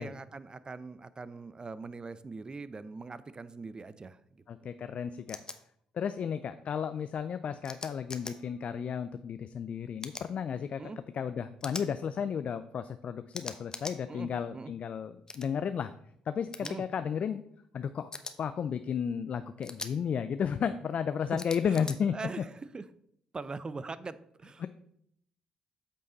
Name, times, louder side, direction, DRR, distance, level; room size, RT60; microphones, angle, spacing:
voice 1, 0.0-4.7 10.8-11.0 14.1-14.3 14.5-14.7 16.6-16.8 21.3-21.4 21.7-22.8 23.3-24.7, right 4 dB, 35° right, 15 dB, 0.6 m, -42 dB
voice 2, 4.5-5.4 5.9-10.8 11.1-15.9 16.3-17.4 17.7-18.1 18.4-22.1 24.6-24.7, left 7 dB, 55° left, 11 dB, 0.4 m, -33 dB
sound 1, 5.3-5.6 7.6-8.3 10.0-10.3 11.6-11.9 13.3-14.0 15.3-15.5 16.5-16.7 18.1-18.3 19.6-19.9 21.4-22.0, left 3 dB, 25° left, 0.9 m, -41 dB
8.4 x 5.5 x 4.0 m, 0.70 s
hypercardioid pair, 55°, 3 cm